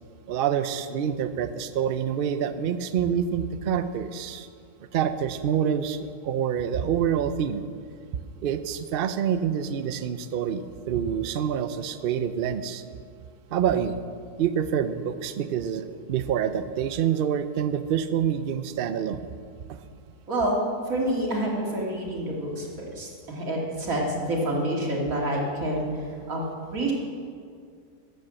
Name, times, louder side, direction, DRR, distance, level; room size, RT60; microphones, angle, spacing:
voice 1, 0.3-4.5 4.9-7.6 8.4-12.8 13.5-14.0 14.4-19.3 19.7-19.8, right 8 dB, 80° right, 11 dB, 0.5 m, -27 dB
voice 2, 20.3-25.9 26.3-26.4 26.7-26.9, right 1 dB, 60° right, -2 dB, 2.6 m, -27 dB
12.0 x 7.9 x 7.5 m, 2.2 s
omnidirectional pair, 1.7 m